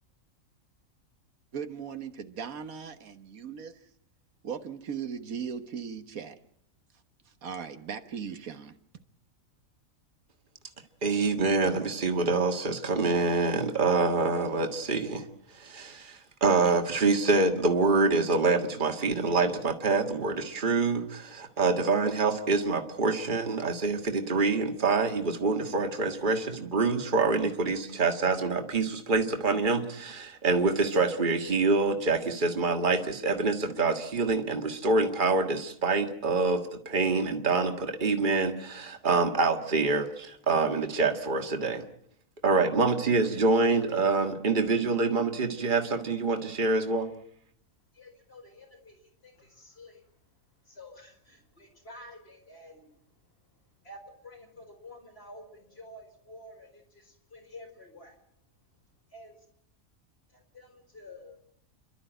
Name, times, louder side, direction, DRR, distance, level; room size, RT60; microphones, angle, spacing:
voice 1, 1.5-3.8 4.4-6.3 7.4-8.7, right 7 dB, 85° right, 1.7 m, -38 dB
voice 2, 11.0-15.2 15.5-41.8 42.4-47.1, right 3 dB, 35° right, 1.9 m, -26 dB
voice 3, 47.9-50.0 50.7-52.8 53.8-58.1 59.1-59.4 60.3-61.4, left 1 dB, 45° left, 5.1 m, -50 dB
29.5 x 12.5 x 9.1 m
omnidirectional pair, 1.4 m